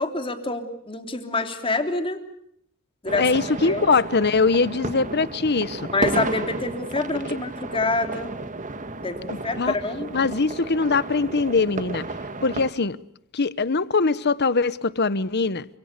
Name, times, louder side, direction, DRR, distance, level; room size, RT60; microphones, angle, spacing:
voice 1, 0.0-2.2 3.0-3.3 3.6-3.9 5.9-8.4 9.0-10.1, left 2 dB, 25° left, 3.2 m, -26 dB
sound 1, 3.1-12.7, right 2 dB, 35° right, 1.7 m, -32 dB
voice 2, 3.2-5.8 9.3-9.7 10.1-12.0 12.4-13.0 13.3-15.7, left 4 dB, 50° left, 1.1 m, -22 dB
30.0 x 26.5 x 6.8 m
head